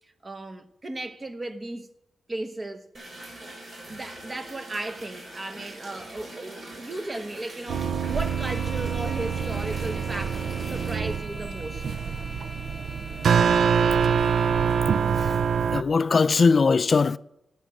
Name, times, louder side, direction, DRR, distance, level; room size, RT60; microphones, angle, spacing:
voice 1, 0.2-1.9 2.3-2.8 3.8-11.9, right 2 dB, 30° right, 1.1 m, -35 dB
sound 1, 2.9-11.0, right 1 dB, 55° right, 4.1 m, -43 dB
sound 2, 7.7-15.8, right 6 dB, 75° right, 0.5 m, -25 dB
sound 3, 8.0-15.1, left 1 dB, ahead, 1.3 m, -43 dB
voice 2, 15.7-17.2, left 4 dB, 45° left, 0.4 m, -20 dB
10.0 x 8.5 x 6.4 m
cardioid pair, 105°, 0 cm